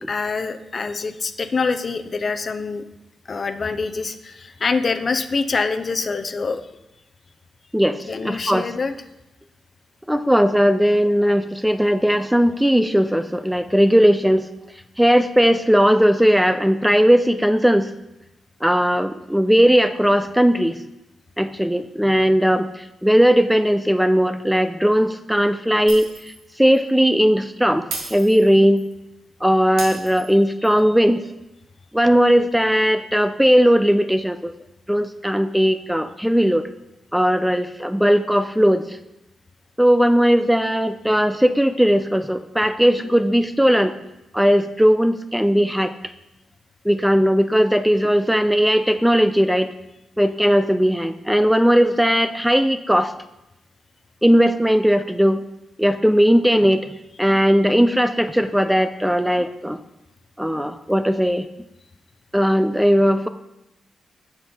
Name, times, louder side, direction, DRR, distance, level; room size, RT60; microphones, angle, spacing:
voice 1, 0.1-2.8 3.3-6.6 8.1-8.9, left 4 dB, 40° left, 9 dB, 0.7 m, -25 dB
voice 2, 7.7-8.7 10.1-14.5 15.0-17.9 18.6-20.8 21.4-28.8 29.4-31.2 31.9-34.5 34.9-36.7 37.1-39.0 39.8-43.9 44.3-45.9 46.8-49.7 50.2-53.1 54.2-55.4 55.8-56.9 57.2-59.8 60.4-61.5 62.3-63.3, equal, 5° right, 10 dB, 0.4 m, -18 dB
Shatter, 25.9-26.4 26.7-26.9 27.9-28.9 29.8-30.8, right 3 dB, 85° right, 2.4 m, -34 dB
7.6 x 6.1 x 5.4 m, 0.91 s
cardioid pair, 90°, 0 cm